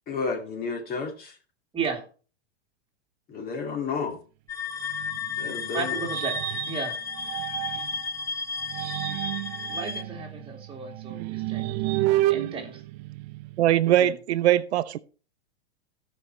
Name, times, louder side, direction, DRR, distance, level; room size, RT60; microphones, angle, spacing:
voice 1, 0.1-1.3 3.3-4.2 5.4-6.0, left 5 dB, 30° left, 2.2 m, -31 dB
sound 1, 4.5-10.0, left 5 dB, 10° left, 0.7 m, -33 dB
sound 2, 4.9-8.1 8.6-13.8, right 17 dB, 40° right, 0.5 m, -31 dB
voice 2, 5.7-6.3 6.7-7.0 9.1-9.2 9.7-11.9 12.3-12.8 14.0-14.1, right 5 dB, 15° right, 2.7 m, -34 dB
voice 3, 13.6-15.0, right 13 dB, 80° right, 0.7 m, -21 dB
16.0 x 5.6 x 4.3 m
hypercardioid pair, 135°, 33 cm